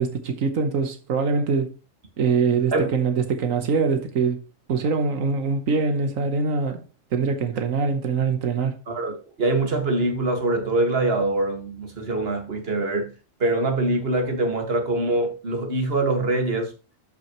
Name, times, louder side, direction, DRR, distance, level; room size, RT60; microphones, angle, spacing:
voice 1, 0.0-1.7 2.2-4.4 4.7-6.8 7.1-8.8, right 5 dB, 90° right, 1.5 m, -23 dB
voice 2, 8.9-13.1 13.4-16.7, right 2 dB, 50° right, 2.1 m, -24 dB
12.5 x 6.0 x 3.0 m
omnidirectional pair, 1.3 m